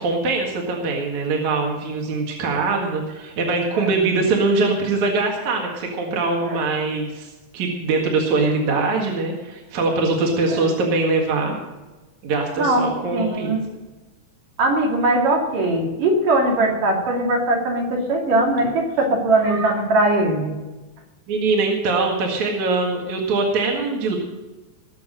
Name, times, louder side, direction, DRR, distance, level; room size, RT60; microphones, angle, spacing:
voice 1, 0.0-11.5 12.2-13.5 21.3-24.2, right 3 dB, 65° right, 0 dB, 3.1 m, -22 dB
voice 2, 12.6-13.6 14.6-20.5, right 2 dB, 85° right, -1 dB, 4.4 m, -20 dB
20.0 x 7.2 x 6.5 m, 1.2 s
omnidirectional pair, 3.7 m